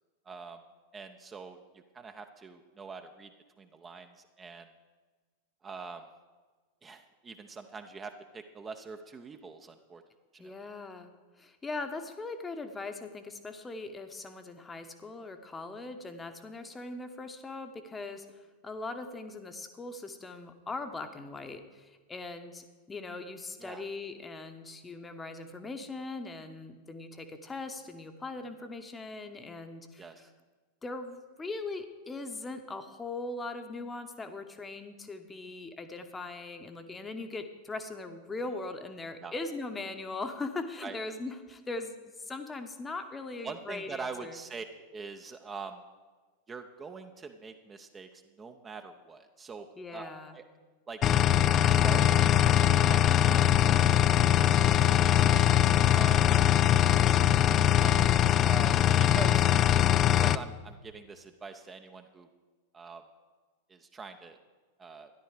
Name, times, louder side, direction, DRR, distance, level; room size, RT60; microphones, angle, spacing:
voice 1, 0.3-0.6 0.9-3.3 3.6-4.7 5.6-6.1 6.8-10.0 10.3-10.7 23.6-23.8 30.0-30.3 39.2-39.3 40.8-41.0 43.4-44.6 44.9-45.8 46.5-50.4 50.9-55.5 55.9-56.2 57.0-57.3 57.8-58.1 58.4-59.5 60.2-62.3 62.7-63.0 63.7-64.4 64.8-65.1, right 4 dB, 20° right, 6 dB, 0.7 m, -44 dB
voice 2, 10.4-11.1 11.4-18.3 18.6-30.1 30.8-44.4 49.8-50.4 55.7-56.1, left 3 dB, 15° left, 7 dB, 1.0 m, -40 dB
sound 1, 51.0-60.4, left 11 dB, 30° left, 0.3 m, -22 dB
13.0 x 11.0 x 4.9 m, 1.4 s
figure-of-eight pair, 90°, 0 cm